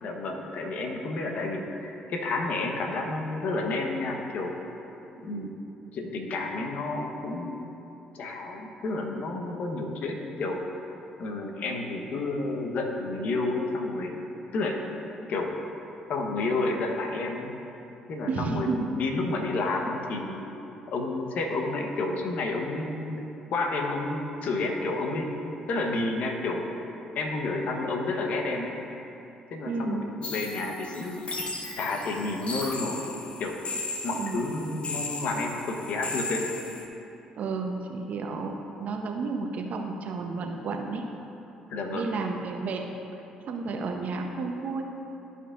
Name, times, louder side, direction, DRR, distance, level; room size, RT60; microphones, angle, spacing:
voice 1, 0.0-4.5 5.2-5.5 5.9-7.6 8.1-10.6 11.2-14.2 14.5-14.8 15.3-15.6 16.1-17.5 18.1-18.7 18.9-20.5 20.9-25.3 25.7-26.6 27.1-28.8 29.5-31.2 31.7-33.6 34.0-36.5 41.7-42.1, left 2 dB, 65° left, 2 dB, 1.0 m, -30 dB
voice 2, 5.2-5.6 18.3-18.9 29.6-30.0 34.2-34.4 37.4-41.1 41.9-42.9 43.5-44.8, right 4 dB, 60° right, 2 dB, 0.7 m, -32 dB
sound 1, 30.2-36.9, left 3 dB, 40° left, 1.1 m, -36 dB
13.5 x 5.4 x 2.5 m, 2.9 s
hypercardioid pair, 55°, 3 cm